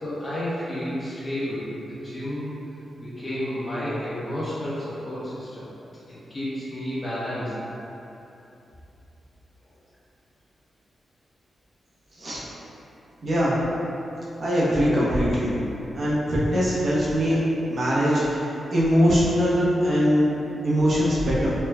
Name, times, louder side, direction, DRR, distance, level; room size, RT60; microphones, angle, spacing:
voice 1, 0.0-2.5 3.0-5.7 6.1-7.6, equal, 25° left, -10 dB, 0.8 m, -31 dB
voice 2, 13.2-13.6 14.4-15.5 15.9-17.4 17.7-21.5, equal, 50° right, -8 dB, 0.8 m, -22 dB
4.3 x 2.2 x 2.3 m, 3.0 s
wide cardioid pair, 135°, 0 cm